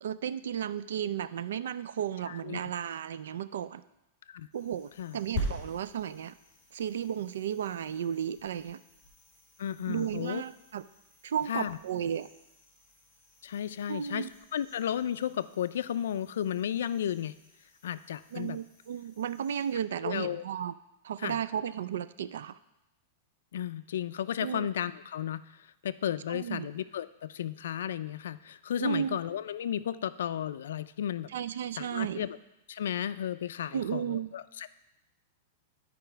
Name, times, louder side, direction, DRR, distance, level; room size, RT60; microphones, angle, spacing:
voice 1, 0.0-3.8 4.5-6.3 6.7-8.8 9.9-10.8 11.2-12.3 13.9-14.3 18.3-20.7 21.0-22.6 24.4-24.7 26.3-26.7 28.8-29.2 31.3-32.3 33.7-34.3, right 9 dB, 80° right, 15 dB, 0.4 m, -34 dB
voice 2, 2.3-2.7 4.3-4.5 5.0-5.2 9.6-10.4 11.5-11.8 13.4-14.3 14.5-17.3 17.8-18.6 20.0-20.4 21.2-21.4 23.5-31.3 31.8-32.3 32.7-34.7, left 10 dB, 80° left, 15 dB, 0.4 m, -34 dB
sound 1, 4.5-19.7, equal, 10° left, 3.4 m, -45 dB
10.5 x 4.9 x 4.5 m, 0.91 s
supercardioid pair, 180°, 0 cm